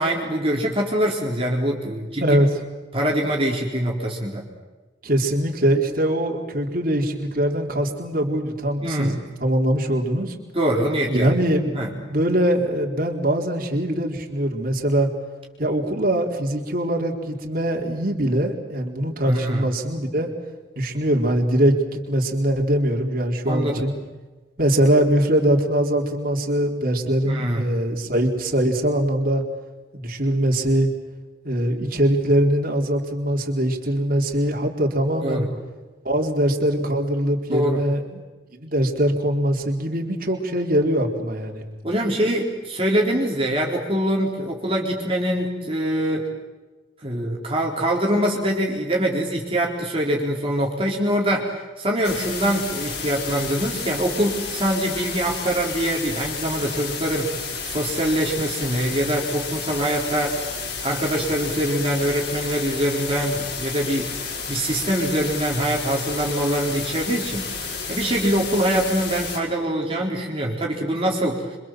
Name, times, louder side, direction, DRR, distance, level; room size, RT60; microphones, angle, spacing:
voice 1, 0.0-2.4 2.9-4.4 8.8-9.2 10.5-11.3 11.7-11.9 19.3-19.6 23.5-23.8 27.2-27.6 35.2-35.5 37.5-37.8 41.8-46.3 47.0-60.4 60.8-71.6, right 1 dB, 30° right, -1 dB, 4.2 m, -24 dB
voice 2, 5.0-10.4 11.1-15.1 15.6-20.3 20.8-24.0 24.6-29.4 29.9-30.9 31.4-35.5 36.0-38.2 38.6-41.6, right 1 dB, 50° right, 1 dB, 4.0 m, -22 dB
sound 1, 52.0-69.4, left 5 dB, 65° left, 7.0 m, -31 dB
28.5 x 25.5 x 7.7 m, 1.2 s
head